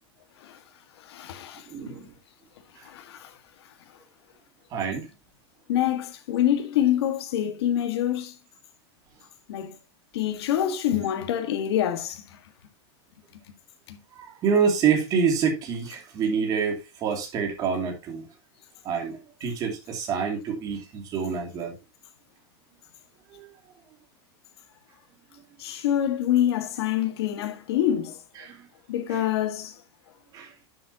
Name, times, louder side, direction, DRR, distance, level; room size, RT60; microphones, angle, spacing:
voice 1, 1.0-1.7 2.8-3.4 5.7-8.3 9.5-9.8 10.1-12.2 13.9-14.0 25.6-28.2 28.9-29.8, left 11 dB, 75° left, 1.7 m, -26 dB
voice 2, 1.7-2.0 4.7-5.1 14.1-18.2 18.8-21.7 23.3-23.5 28.4-28.7 29.1-29.2 30.3-30.5, right 6 dB, 25° right, 2.6 m, -27 dB
11.0 x 7.6 x 2.8 m
supercardioid pair, 170°, 14 cm